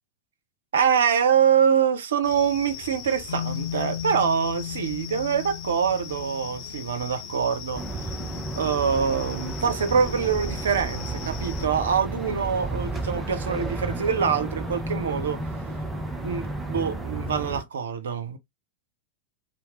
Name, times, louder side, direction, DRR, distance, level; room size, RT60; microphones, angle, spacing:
voice 1, 0.7-8.1 8.6-15.4 16.2-18.4, right 7 dB, 65° right, 0.5 m, -24 dB
sound 1, 2.2-11.7, left 7 dB, 35° left, 0.8 m, -40 dB
sound 2, 3.3-7.6, left 10 dB, 70° left, 0.4 m, -36 dB
sound 3, 7.7-17.6, right 2 dB, 10° right, 0.6 m, -32 dB
2.8 x 2.0 x 2.8 m
figure-of-eight pair, 90°, 0 cm